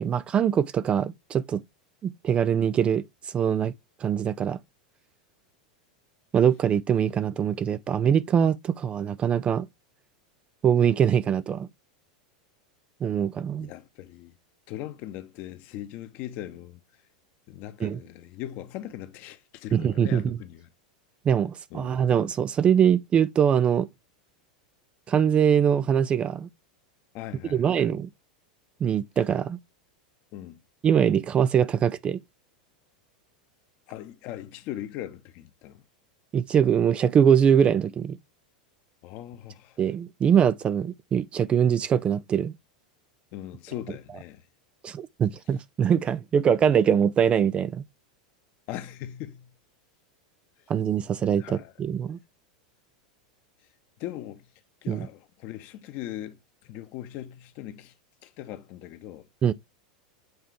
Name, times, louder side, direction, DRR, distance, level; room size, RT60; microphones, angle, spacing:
voice 1, 0.0-1.6 2.0-3.1 3.3-3.7 4.0-4.6 6.3-9.7 10.6-11.7 13.0-13.7 17.8-18.0 19.7-20.4 21.2-23.9 25.1-26.5 27.5-28.1 28.8-29.6 30.8-32.2 36.3-38.2 39.8-42.5 44.8-47.8 50.7-52.2 54.9-55.1 59.4-59.5, right 8 dB, 30° right, 0.4 m, -23 dB
voice 2, 13.6-14.4 14.7-16.8 17.5-20.7 21.7-22.1 27.1-27.8 30.3-30.6 33.9-35.8 39.0-39.8 43.3-44.4 48.7-49.5 51.2-51.7 54.0-54.5 54.8-57.9 58.2-59.3, left 13 dB, 50° left, 1.1 m, -40 dB
7.9 x 3.7 x 3.4 m
hypercardioid pair, 95°, 4 cm